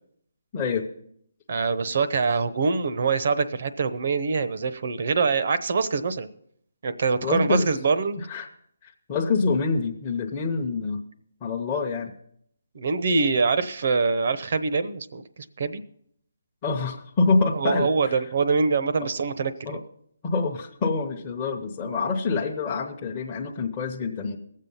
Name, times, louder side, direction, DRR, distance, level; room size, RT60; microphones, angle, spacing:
voice 1, 0.5-0.9 7.2-7.8 8.2-8.5 8.8-11.0 11.4-12.1 16.6-18.3 19.0-19.1 19.6-19.8 20.2-24.4, left 4 dB, 20° left, -2 dB, 0.8 m, -26 dB
voice 2, 1.5-6.3 6.8-8.2 12.7-15.2 15.6-15.8 17.5-19.8, right 4 dB, 50° right, 13 dB, 0.8 m, -24 dB
18.5 x 7.5 x 5.5 m, 0.68 s
hypercardioid pair, 165°, 0 cm